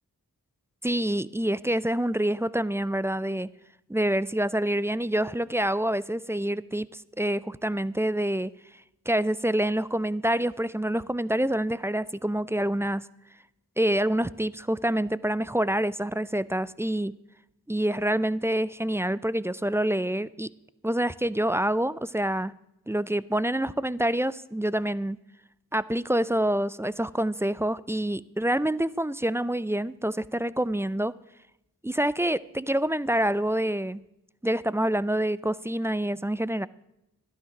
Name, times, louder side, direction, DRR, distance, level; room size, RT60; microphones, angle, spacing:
voice 1, 0.8-3.5 3.9-8.5 9.1-13.1 13.8-17.1 17.7-20.5 20.8-22.5 22.9-25.2 25.7-31.1 31.8-34.0 34.4-36.7, right 1 dB, 5° right, 18 dB, 0.4 m, -27 dB
12.0 x 10.0 x 6.0 m, 0.86 s
cardioid pair, 45°, 36 cm